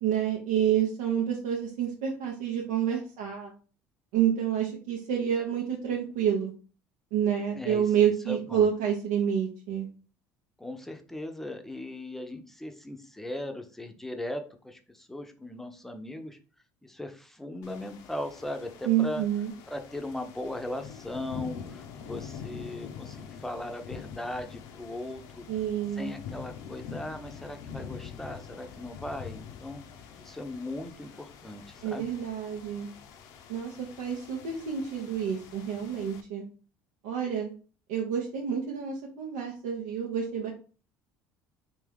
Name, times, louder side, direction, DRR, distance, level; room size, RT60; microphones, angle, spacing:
voice 1, 0.0-3.5 4.1-6.5 7.1-9.9 18.8-19.5 25.5-26.1 31.8-32.9 33.5-36.4 37.0-37.5 37.9-40.5, right 9 dB, 90° right, -1 dB, 0.7 m, -28 dB
voice 2, 8.3-8.7 10.6-16.4 16.8-19.2 19.7-25.4 26.0-29.8 30.2-32.1, left 1 dB, 5° left, 6 dB, 0.6 m, -38 dB
sound 1, 17.6-36.2, left 7 dB, 75° left, 0.5 m, -45 dB
3.4 x 2.8 x 3.4 m, 0.37 s
supercardioid pair, 100°, 6 cm